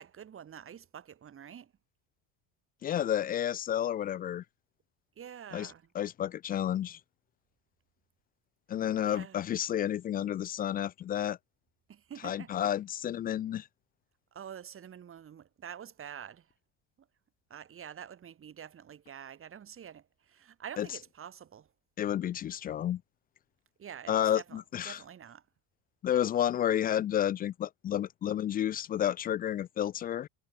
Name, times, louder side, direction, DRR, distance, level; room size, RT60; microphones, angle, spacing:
voice 1, 0.0-1.7 5.2-5.9 9.0-9.5 11.9-12.5 14.3-16.5 17.5-21.7 23.8-25.4, right 8 dB, 25° right, 5.4 m, -47 dB
voice 2, 2.8-4.4 5.5-7.0 8.7-11.4 12.2-13.7 20.8-20.9 22.0-23.0 24.1-25.0 26.0-30.3, left 10 dB, 20° left, 0.3 m, -31 dB
cardioid pair, 165°, 47 cm